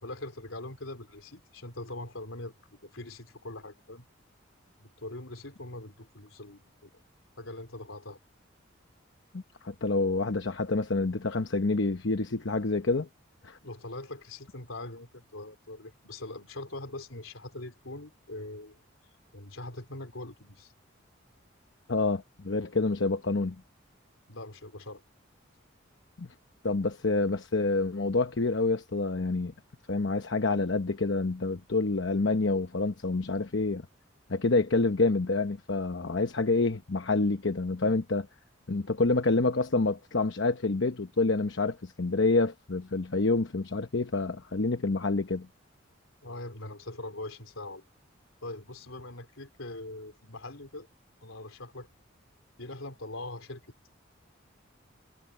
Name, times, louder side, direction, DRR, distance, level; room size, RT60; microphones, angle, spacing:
voice 1, 0.0-4.0 4.8-6.9 7.4-8.2 13.6-18.8 19.3-20.7 24.3-25.0 46.2-47.8 48.4-50.9 51.2-51.9 52.6-53.6, left 2 dB, 85° left, 3.8 m, -42 dB
voice 2, 9.3-13.1 13.4-13.6 21.9-23.6 26.2-26.3 26.6-29.5 29.9-33.9 34.3-38.3 38.7-45.5, left 3 dB, 65° left, 0.9 m, -27 dB
head